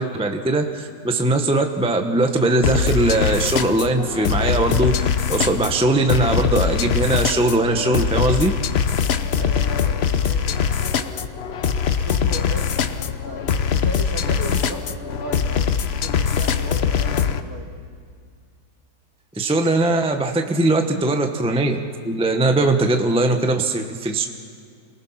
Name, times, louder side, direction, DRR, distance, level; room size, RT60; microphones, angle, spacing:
voice 1, 0.0-8.5 19.4-24.3, right 2 dB, 5° right, 4 dB, 0.8 m, -20 dB
sound 1, 2.6-17.4, left 7 dB, 55° left, 0.7 m, -22 dB
voice 2, 9.3-11.4 12.0-13.4 13.7-17.7 20.4-20.6 20.9-21.1, right 2 dB, 55° right, 1 dB, 2.9 m, -36 dB
27.5 x 19.0 x 5.8 m, 2.2 s
omnidirectional pair, 1.9 m